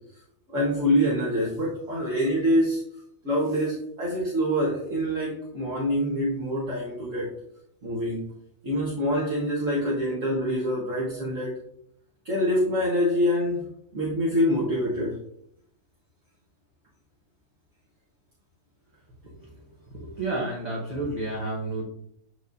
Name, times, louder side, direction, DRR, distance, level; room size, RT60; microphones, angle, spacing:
voice 1, 0.5-2.8 3.2-7.3 7.8-8.2 8.6-11.6 12.2-15.2, equal, 55° right, -4 dB, 1.8 m, -25 dB
voice 2, 19.9-21.8, right 2 dB, 30° right, -2 dB, 1.1 m, -31 dB
7.9 x 4.8 x 2.7 m, 0.71 s
omnidirectional pair, 1.6 m